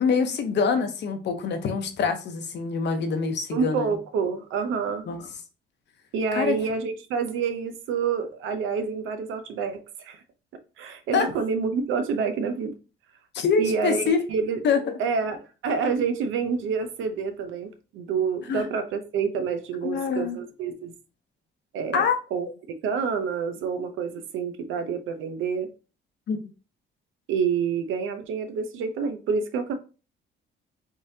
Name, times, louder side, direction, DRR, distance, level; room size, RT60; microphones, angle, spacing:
voice 1, 0.0-3.9 5.1-5.2 6.3-6.6 11.1-11.3 13.3-14.2 14.6-14.9 18.5-18.6 19.8-20.4 21.9-22.2 26.3-26.4, left 5 dB, 60° left, 6 dB, 0.8 m, -25 dB
voice 2, 3.5-5.1 6.1-10.2 10.8-12.7 13.6-14.6 15.0-20.9 21.7-22.5 22.8-25.7 27.3-29.7, right 5 dB, 85° right, 8 dB, 0.7 m, -28 dB
3.7 x 3.2 x 2.7 m, 0.33 s
cardioid pair, 90°, 20 cm